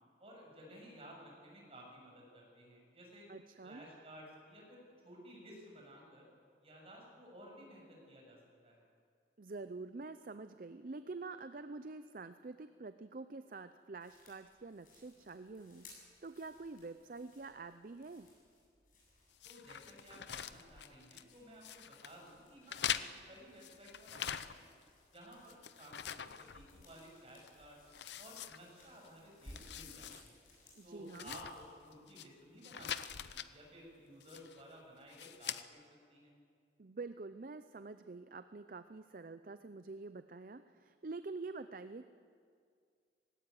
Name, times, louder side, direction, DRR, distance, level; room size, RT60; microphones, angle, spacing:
voice 1, 0.2-3.3 3.6-6.3 6.6-8.4 8.6-8.8 19.4-24.7 25.1-27.8 28.2-30.4 30.8-35.8 36.1-36.3, equal, 35° right, -1 dB, 6.9 m, -55 dB
voice 2, 3.3-3.9 9.4-15.9 16.2-18.3 30.8-31.4 36.8-42.1, right 3 dB, 50° right, 11 dB, 0.5 m, -47 dB
sound 1, 14.0-31.7, left 2 dB, 50° left, 8.0 m, -63 dB
sound 2, 19.4-21.3 21.6-22.1 22.7-24.8 25.1-27.1 27.4-27.5 27.9-29.1 29.4-30.2 30.5-30.6 31.1-32.3 32.6-33.5 34.2-34.6 35.1-35.6, left 9 dB, 75° left, 0.7 m, -43 dB
18.0 x 17.5 x 9.6 m, 2.1 s
head